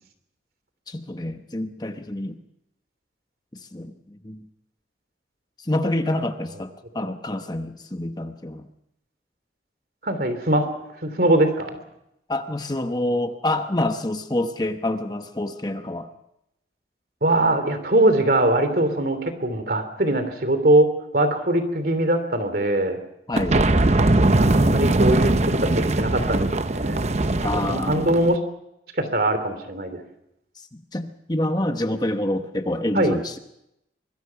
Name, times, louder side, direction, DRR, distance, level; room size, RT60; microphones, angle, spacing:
voice 1, 0.9-2.4 3.7-4.5 5.6-8.7 12.3-16.1 23.3-23.6 27.4-28.1 30.6-33.4, left 1 dB, 20° left, 7 dB, 1.0 m, -27 dB
voice 2, 10.0-10.7 11.0-11.8 17.2-23.0 24.4-27.0 27.5-28.4 29.0-30.0 32.9-33.1, right 1 dB, 55° right, 9 dB, 3.1 m, -22 dB
sound 1, 23.3-28.4, right 2 dB, 35° right, 0.8 m, -21 dB
25.0 x 21.5 x 5.9 m, 0.82 s
head